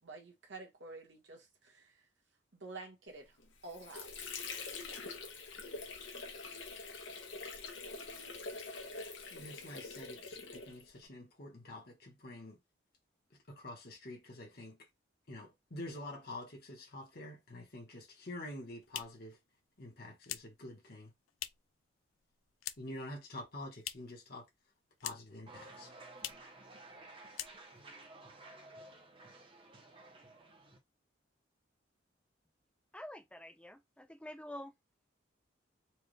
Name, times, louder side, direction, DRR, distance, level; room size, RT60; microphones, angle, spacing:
voice 1, 0.0-2.1 2.5-3.4 3.6-4.3 5.3-5.4, right 3 dB, 70° right, 1.4 m, -50 dB
Water / Sink (filling or washing), 3.4-11.0, left 4 dB, 70° left, 1.1 m, -45 dB
voice 2, 9.3-12.6 13.5-14.8 15.3-19.4 19.8-21.1 22.8-24.5 25.0-25.9, left 1 dB, 50° left, 1.3 m, -47 dB
sound 1, 18.4-21.8 22.1-23.1 23.3-24.3 24.5-25.5 25.7-25.8 26.1-26.6 26.9-27.0 27.3-27.9, left 13 dB, 90° left, 0.4 m, -45 dB
sound 2, 25.5-30.8, right 2 dB, 25° right, 0.8 m, -54 dB
voice 3, 32.9-34.7, left 1 dB, 5° left, 0.5 m, -48 dB
4.4 x 2.4 x 3.2 m
head